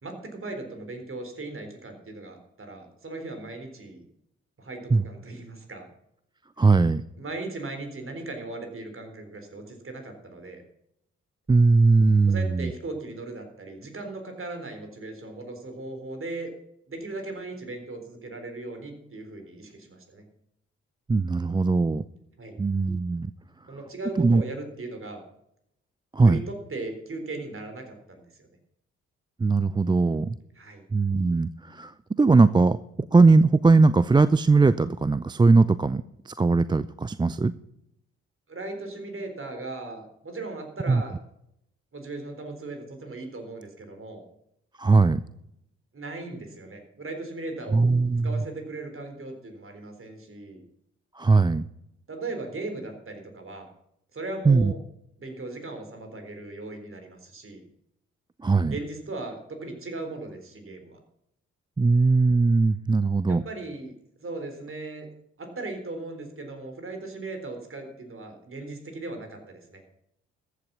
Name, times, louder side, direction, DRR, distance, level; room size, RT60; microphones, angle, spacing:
voice 1, 0.0-4.0 4.6-5.9 7.2-10.6 12.2-16.5 16.9-20.2 22.4-22.5 23.7-25.2 26.2-28.5 30.6-30.8 38.5-41.2 41.9-44.2 45.9-47.9 48.2-50.6 52.1-53.7 54.1-54.8 55.2-57.6 58.7-61.0 63.3-63.9 64.2-65.1 65.4-69.8, right 2 dB, 40° right, 5 dB, 3.8 m, -38 dB
voice 2, 6.6-7.0 11.5-12.7 21.1-22.0 22.6-23.3 24.2-24.4 26.1-26.4 29.4-30.4 30.9-32.8 33.1-37.5 40.9-41.0 44.8-45.2 47.7-48.4 51.2-51.6 54.5-54.7 58.4-58.8 61.8-63.4, right 3 dB, 15° right, 16 dB, 0.5 m, -20 dB
14.0 x 8.3 x 6.1 m, 0.77 s
hypercardioid pair, 40°, 33 cm